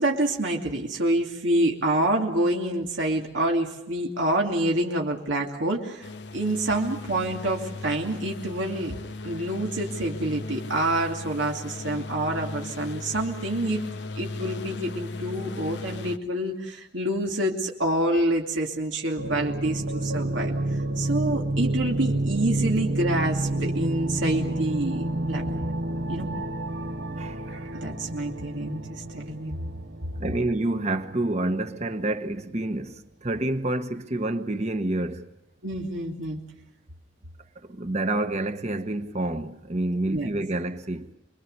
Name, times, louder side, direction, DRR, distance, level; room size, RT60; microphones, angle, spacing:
voice 1, 0.0-9.0 9.2-13.8 14.2-20.5 21.0-25.7 26.1-26.3 27.5-29.6 35.6-36.4 40.1-40.3, right 1 dB, 90° right, 2.7 m, -27 dB
sound 1, 6.0-16.2, left 2 dB, 65° left, 0.9 m, -37 dB
sound 2, 19.2-31.9, right 1 dB, 60° right, 1.0 m, -29 dB
voice 2, 30.2-35.3 37.7-41.1, right 2 dB, 35° right, 1.2 m, -28 dB
26.0 x 22.5 x 6.8 m
head